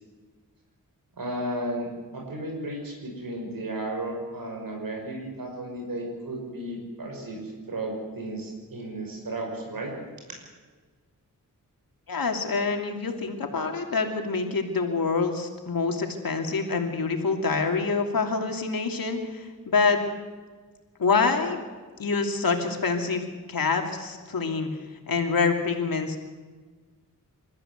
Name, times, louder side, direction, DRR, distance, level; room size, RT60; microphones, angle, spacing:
voice 1, 1.2-9.9, right 1 dB, 80° right, 0 dB, 5.8 m, -34 dB
voice 2, 12.1-20.0 21.0-21.6 22.0-24.7 25.1-26.2, left 4 dB, 85° left, 4 dB, 2.9 m, -26 dB
28.0 x 14.0 x 8.1 m, 1.4 s
wide cardioid pair, 90°, 34 cm